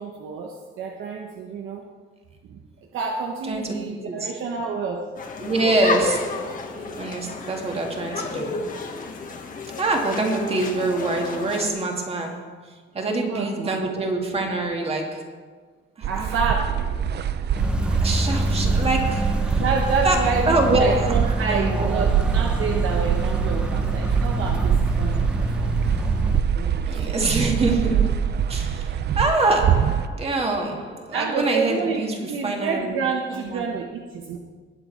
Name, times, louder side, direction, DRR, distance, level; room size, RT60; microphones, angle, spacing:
voice 1, 0.0-1.9 2.5-2.6 2.9-5.0 13.0-13.9 16.1-16.8 19.6-25.3 26.5-27.1 31.1-34.4, right 5 dB, 85° right, 1 dB, 1.2 m, -28 dB
voice 2, 3.5-4.3 5.4-8.7 9.8-12.6 12.9-15.4 16.0-16.3 18.0-19.6 20.0-22.3 26.9-33.0 33.3-33.7, right 2 dB, 30° right, 2 dB, 1.8 m, -25 dB
sound 1, 5.2-11.7, left 4 dB, 40° left, 1.3 m, -31 dB
sound 2, 16.0-30.1, right 9 dB, 55° right, 0.6 m, -25 dB
sound 3, 17.5-26.4, right 1 dB, 5° right, 0.7 m, -25 dB
20.0 x 7.2 x 4.5 m, 1.4 s
cardioid pair, 160°, 20 cm